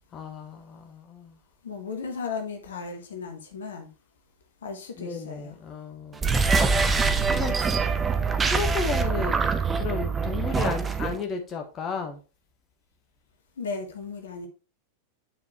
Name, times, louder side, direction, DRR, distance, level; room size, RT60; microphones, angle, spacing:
voice 1, 0.1-1.4 5.0-6.6 7.3-7.6 8.4-9.5 9.8-12.2, left 5 dB, 30° left, 1.2 m, -33 dB
voice 2, 1.6-3.9 4.6-5.5 13.6-14.5, left 4 dB, 65° left, 1.3 m, -35 dB
sound 1, 6.1-11.2, right 4 dB, 15° right, 0.8 m, -24 dB
8.9 x 4.8 x 3.0 m
figure-of-eight pair, 90°, 0 cm